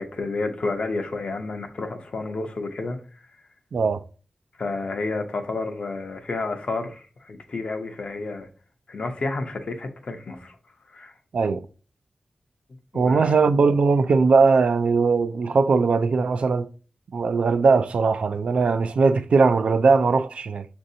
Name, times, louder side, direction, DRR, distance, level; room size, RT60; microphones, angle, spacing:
voice 1, 0.0-3.0 4.6-8.5 8.9-10.6 10.9-11.1 12.9-13.4, left 3 dB, 60° left, 0.7 m, -30 dB
voice 2, 3.7-4.0 11.3-11.7 12.9-16.7 17.1-20.7, right 4 dB, 75° right, 0.3 m, -20 dB
6.2 x 2.6 x 2.7 m
wide cardioid pair, 75°, 2 cm